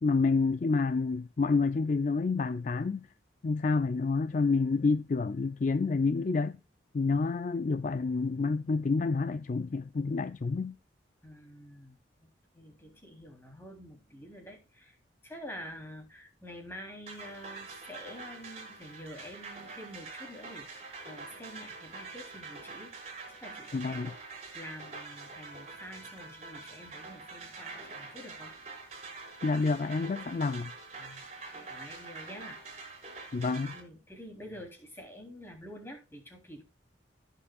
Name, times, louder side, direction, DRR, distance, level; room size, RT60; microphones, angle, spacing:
voice 1, 0.0-3.1 3.4-6.6 6.9-10.8 23.7-24.1 29.4-30.7 33.3-33.7, left 4 dB, 40° left, 0.4 m, -28 dB
voice 2, 11.2-12.3 12.5-15.0 15.2-23.0 23.3-28.5 31.0-31.2 31.5-33.0 33.7-36.6, equal, 10° left, 3.4 m, -48 dB
sound 1, 17.1-33.8, right 4 dB, 35° right, 5.4 m, -45 dB
19.5 x 6.9 x 2.4 m
head